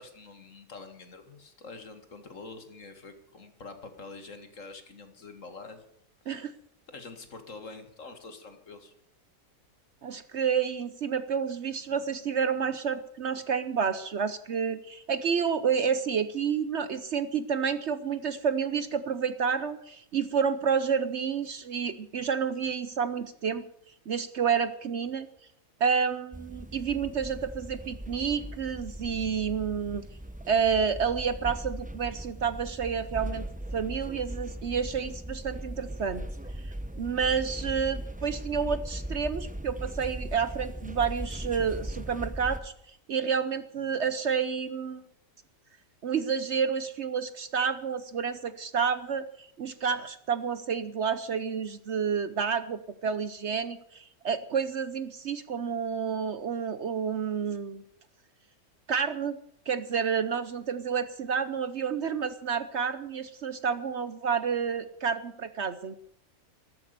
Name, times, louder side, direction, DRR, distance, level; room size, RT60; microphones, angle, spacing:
voice 1, 0.0-5.9 6.9-8.9, left 3 dB, 55° left, 8 dB, 2.2 m, -46 dB
voice 2, 10.0-23.6 24.1-25.3 25.8-30.0 30.5-33.5 33.7-36.2 36.6-45.0 46.0-57.8 58.9-59.4 59.7-66.0, right 6 dB, 55° right, 13 dB, 1.0 m, -29 dB
sound 1, 26.3-42.6, right 1 dB, 5° right, 0.9 m, -38 dB
13.5 x 13.5 x 6.7 m, 0.70 s
omnidirectional pair, 1.6 m